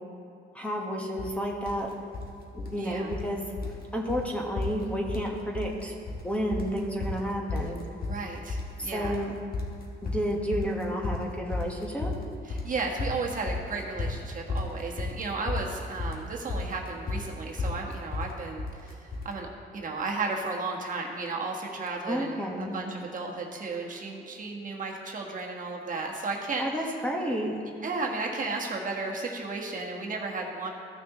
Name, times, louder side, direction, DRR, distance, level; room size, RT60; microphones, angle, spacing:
voice 1, 0.5-1.9 2.5-3.4 3.9-5.9 6.2-7.8 8.8-9.3 10.0-12.1 22.1-22.7 26.6-27.5, equal, 5° left, -1 dB, 1.3 m, -31 dB
sound 1, 1.2-1.4 1.7-2.3 2.6-3.3 3.6-3.8 4.1-4.2 4.6-5.3 5.5-6.2 6.5-19.3, left 3 dB, 50° left, 1.6 m, -33 dB
voice 2, 2.7-3.2 8.0-9.2 12.4-27.0 27.7-30.7, right 3 dB, 40° right, -1 dB, 1.4 m, -34 dB
15.0 x 6.2 x 3.0 m, 2.6 s
cardioid pair, 90°, 20 cm